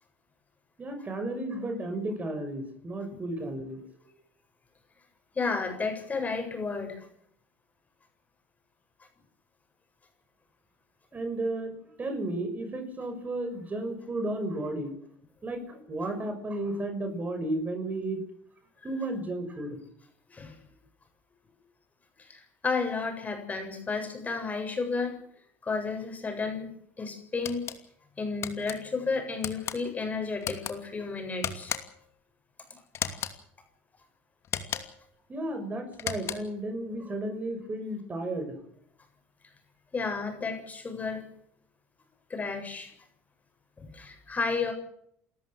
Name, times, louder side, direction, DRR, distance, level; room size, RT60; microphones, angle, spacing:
voice 1, 0.8-3.8 11.1-14.9 15.4-18.2 18.8-19.8 35.3-38.6, right 1 dB, 25° right, 7 dB, 6.0 m, -33 dB
voice 2, 5.4-7.1 20.3-20.6 22.2-25.2 25.6-27.6 28.2-31.7 32.7-33.1 39.9-41.2 42.3-42.9 43.8-44.7, left 4 dB, 25° left, 4 dB, 7.5 m, -32 dB
sound 1, 27.4-27.8 28.4-28.8 29.4-29.8 30.4-30.7 31.4-32.0 32.9-33.4 34.4-35.0 35.9-36.6, left 9 dB, 50° left, 2.7 m, -35 dB
29.5 x 13.5 x 7.8 m, 0.69 s
supercardioid pair, 85°, 6 cm